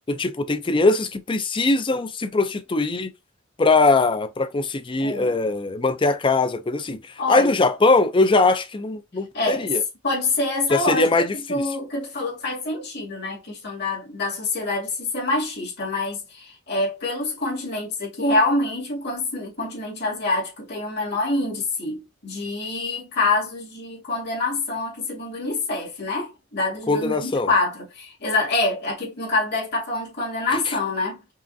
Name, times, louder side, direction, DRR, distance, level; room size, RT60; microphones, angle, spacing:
voice 1, 0.1-3.1 3.6-7.0 7.3-9.8 10.7-11.6 26.9-27.5 30.7-30.8, left 3 dB, 25° left, 0.5 m, -21 dB
voice 2, 5.0-5.4 7.2-7.6 9.3-31.3, left 2 dB, 55° left, 2.4 m, -26 dB
5.5 x 2.5 x 2.6 m
head